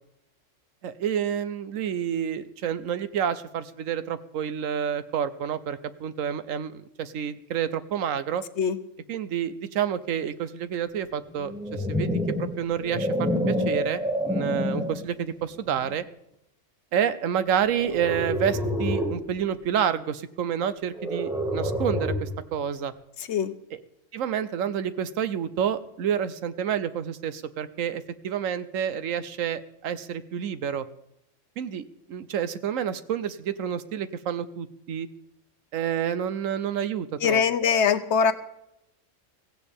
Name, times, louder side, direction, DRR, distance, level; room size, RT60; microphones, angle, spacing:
voice 1, 0.8-8.4 9.1-16.0 16.9-22.9 23.7-23.8 24.1-30.9 31.6-35.1 35.7-37.4, right 8 dB, 90° right, 14 dB, 1.1 m, -29 dB
sound 1, 11.4-15.0 15.7-15.9 17.7-19.2 20.9-22.4, equal, 5° right, 1.7 m, -28 dB
voice 2, 37.2-38.3, left 6 dB, 65° left, 12 dB, 1.1 m, -22 dB
16.5 x 15.5 x 3.6 m, 0.79 s
omnidirectional pair, 1.3 m